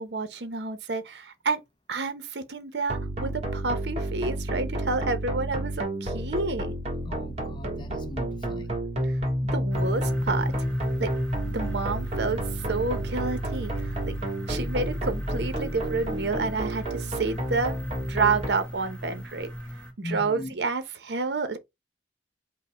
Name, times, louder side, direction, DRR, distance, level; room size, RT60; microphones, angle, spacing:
voice 1, 0.0-1.6 1.9-6.7 9.0-9.2 9.5-10.5 11.0-11.1 11.5-14.1 14.5-17.8 18.1-19.5 20.0-21.6, right 4 dB, 65° right, 0.7 m, -29 dB
sound 1, 2.9-18.5, right 1 dB, 35° right, 1.3 m, -30 dB
voice 2, 7.1-8.8 20.0-20.5, left 2 dB, 25° left, 0.5 m, -38 dB
sound 2, 9.7-19.9, equal, 5° left, 1.5 m, -38 dB
5.2 x 2.1 x 4.4 m
head